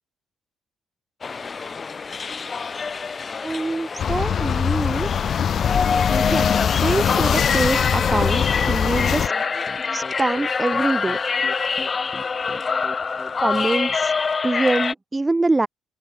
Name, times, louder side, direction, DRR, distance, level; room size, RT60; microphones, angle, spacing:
sound 1, 1.2-14.9, left 5 dB, 35° left, 4.5 m, -26 dB
voice 1, 3.4-5.1 6.1-9.3 9.9-11.2 13.4-14.1 14.4-15.7, right 2 dB, 20° right, 4.0 m, -24 dB
sound 2, 4.0-9.3, left 8 dB, 55° left, 4.3 m, -22 dB
sound 3, 4.2-14.0, left 1 dB, 10° left, 8.0 m, -41 dB
open air
cardioid pair, 90°, 0 cm